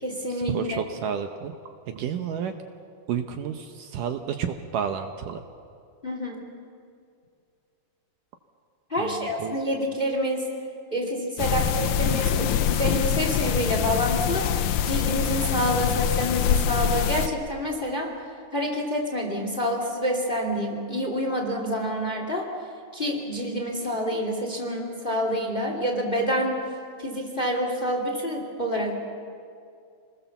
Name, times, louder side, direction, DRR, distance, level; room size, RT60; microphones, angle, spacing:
voice 1, 0.0-0.8 6.0-6.5 8.9-10.5 10.9-18.1 18.5-22.5 22.9-26.6 27.0-29.0, equal, 15° left, 2 dB, 2.1 m, -27 dB
voice 2, 0.5-1.5 1.9-2.5 3.1-5.4 9.0-9.6, right 8 dB, 70° right, 7 dB, 2.3 m, -31 dB
sound 1, 11.4-17.3, left 9 dB, 75° left, 1.9 m, -24 dB
27.0 x 20.5 x 7.0 m, 2.4 s
omnidirectional pair, 4.3 m